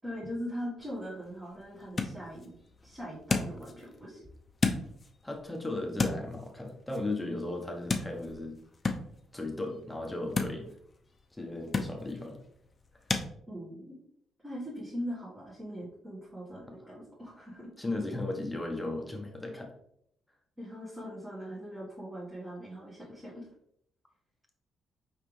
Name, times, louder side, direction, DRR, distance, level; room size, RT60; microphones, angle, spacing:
voice 1, 0.0-2.5 2.8-4.2 13.5-14.0 14.4-17.7 20.6-23.5, equal, 15° right, -7 dB, 1.4 m, -41 dB
sound 1, 0.8-13.3, left 4 dB, 30° left, 0.6 m, -36 dB
voice 2, 5.2-8.6 9.3-10.7 11.3-12.4 16.8-17.0 17.8-19.7, left 2 dB, 10° left, 2 dB, 0.9 m, -36 dB
5.1 x 3.3 x 3.1 m, 0.70 s
cardioid pair, 90°, 0 cm